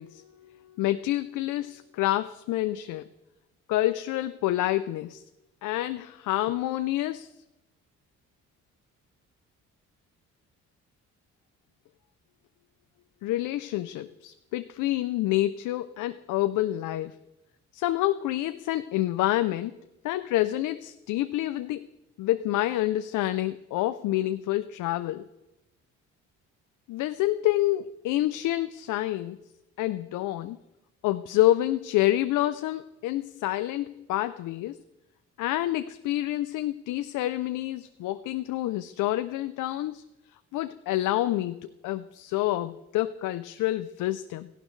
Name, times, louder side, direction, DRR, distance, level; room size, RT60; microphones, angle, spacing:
voice 1, 0.0-3.1 3.7-5.2 5.6-7.3 13.2-17.2 17.7-19.8 20.0-21.8 22.2-25.3 26.9-29.4 29.8-30.6 31.0-34.8 35.4-40.0 40.5-44.5, left 15 dB, 85° left, 11 dB, 0.5 m, -28 dB
15.5 x 11.5 x 3.2 m, 0.97 s
cardioid pair, 90°, 30 cm